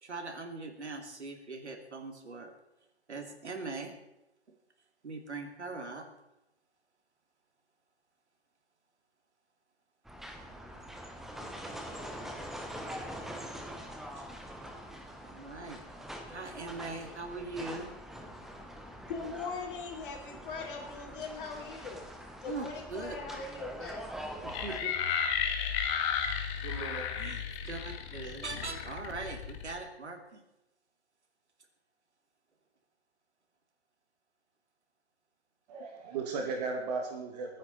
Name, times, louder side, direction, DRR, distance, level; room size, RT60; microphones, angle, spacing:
voice 1, 0.0-2.5 3.1-3.9 5.0-6.1 11.4-11.5 14.2-14.3 15.2-15.8 16.3-17.9 22.5-23.2 24.4-24.9 27.2-30.4, right 3 dB, 90° right, 4 dB, 2.8 m, -41 dB
sound 1, 10.1-24.8, equal, ahead, 0.7 m, -44 dB
voice 2, 19.1-22.1 22.4-24.1, left 4 dB, 50° left, 0 dB, 3.9 m, -40 dB
sound 2, 24.5-29.8, left 7 dB, 25° left, 1.6 m, -33 dB
voice 3, 26.6-27.3 35.7-37.6, right 4 dB, 40° right, 2 dB, 2.3 m, -37 dB
23.5 x 9.6 x 4.1 m, 0.92 s
hypercardioid pair, 140°, 33 cm